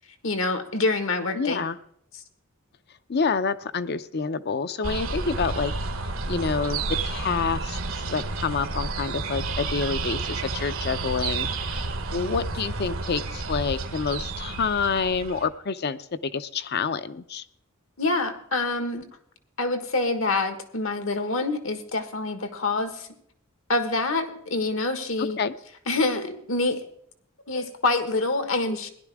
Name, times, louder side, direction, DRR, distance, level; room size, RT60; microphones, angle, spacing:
voice 1, 0.2-1.6 18.0-19.0 19.6-23.1 23.7-25.4 25.9-26.8 27.5-28.9, left 2 dB, 75° left, 8 dB, 1.6 m, -26 dB
voice 2, 1.3-1.8 3.1-5.7 6.3-17.4 25.4-25.5, left 5 dB, 55° left, 13 dB, 0.6 m, -28 dB
sound 1, 4.8-15.5, right 3 dB, 80° right, 1.3 m, -31 dB
17.0 x 11.0 x 3.6 m, 0.68 s
head